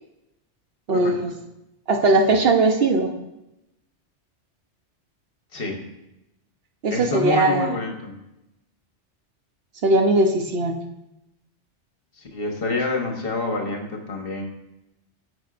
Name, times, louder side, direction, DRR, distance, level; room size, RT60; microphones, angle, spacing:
voice 1, 0.9-1.3 1.9-3.1 6.8-7.7 9.8-10.8, right 2 dB, 60° right, 4 dB, 0.9 m, -19 dB
voice 2, 6.9-8.1 12.2-14.4, left 3 dB, 55° left, 2 dB, 1.3 m, -27 dB
13.0 x 4.7 x 2.5 m, 0.89 s
omnidirectional pair, 1.2 m